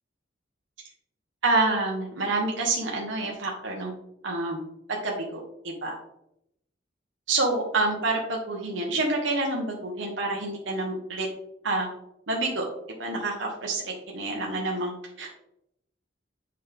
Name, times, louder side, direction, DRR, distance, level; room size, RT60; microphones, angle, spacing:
voice 1, 1.4-3.9 4.2-4.6 5.0-6.0 7.3-11.3 11.6-11.9 12.3-12.6 13.0-15.4, right 2 dB, 80° right, -1 dB, 1.3 m, -28 dB
7.9 x 5.4 x 3.5 m, 0.79 s
head